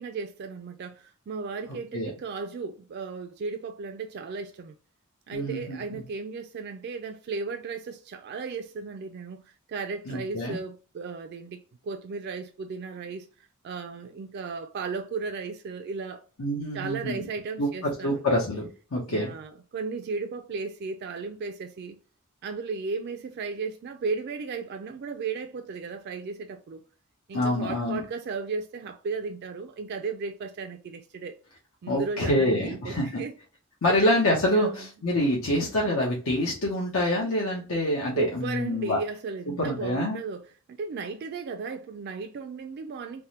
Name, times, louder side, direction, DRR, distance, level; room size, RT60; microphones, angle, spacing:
voice 1, 0.0-4.7 5.3-13.3 13.6-16.2 16.7-18.3 19.1-22.0 22.4-26.8 27.3-31.4 31.8-33.4 33.9-34.2 34.5-34.9 38.1-40.4 40.7-43.2, right 4 dB, 50° right, 0.3 m, -35 dB
voice 2, 5.3-6.0 10.1-10.6 16.4-17.2 17.6-19.3 27.3-28.0 31.9-33.2 33.8-39.0 39.6-40.2, left 1 dB, 80° left, 0.8 m, -26 dB
3.4 x 2.1 x 2.8 m
head